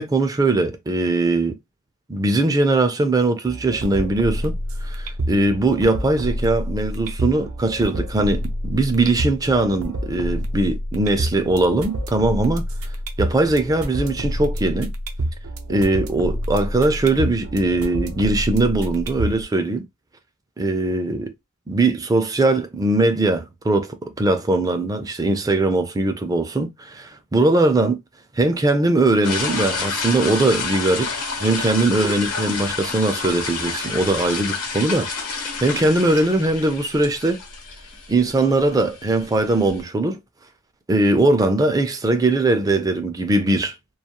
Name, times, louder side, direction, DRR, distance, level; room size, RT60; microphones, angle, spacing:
voice 1, 0.0-1.6 2.1-4.5 4.8-12.6 13.2-14.9 15.7-19.9 20.6-21.3 21.7-28.0 28.4-31.1 31.4-35.1 35.6-37.4 38.1-40.2 40.9-43.7, right 2 dB, 15° right, 0.4 m, -20 dB
sound 1, 3.4-19.4, equal, 70° right, 0.5 m, -28 dB
sound 2, 29.2-39.8, left 4 dB, 85° left, 0.9 m, -29 dB
2.3 x 2.3 x 2.8 m
head